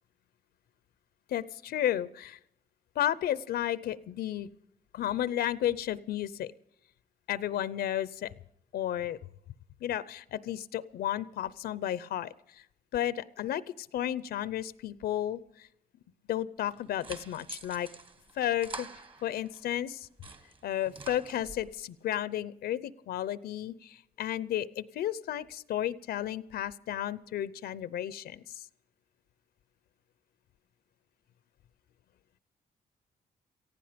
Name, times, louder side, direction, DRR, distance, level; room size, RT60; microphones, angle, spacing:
voice 1, 1.3-2.4 3.0-4.5 4.9-6.5 7.3-8.3 8.7-9.2 9.8-12.6 12.9-15.7 16.3-17.9 18.4-18.9 19.2-20.1 20.6-28.6, left 11 dB, 85° left, 18 dB, 0.7 m, -33 dB
sound 1, 16.6-19.6 20.0-21.8, right 3 dB, 35° right, 1.6 m, -46 dB
18.5 x 15.5 x 5.1 m, 0.75 s
cardioid pair, 105°, 16 cm